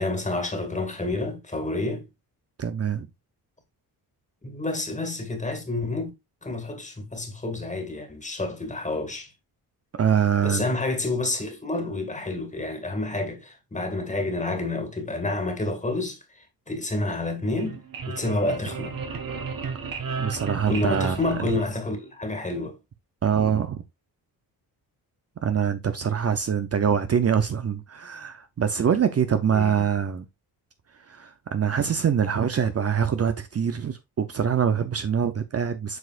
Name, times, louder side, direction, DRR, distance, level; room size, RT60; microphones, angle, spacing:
voice 1, 0.0-2.0 4.4-6.1 6.4-9.3 10.4-16.2 16.7-19.0 20.7-22.8 29.5-29.7, left 2 dB, 20° left, 2.1 m, -29 dB
voice 2, 2.6-3.1 9.9-10.7 20.2-21.5 23.2-23.8 25.4-30.3 30.9-36.0, right 7 dB, 40° right, 0.7 m, -24 dB
sound 1, 17.4-22.1, right 5 dB, 60° right, 1.8 m, -34 dB
7.9 x 4.8 x 2.5 m
cardioid pair, 95°, 39 cm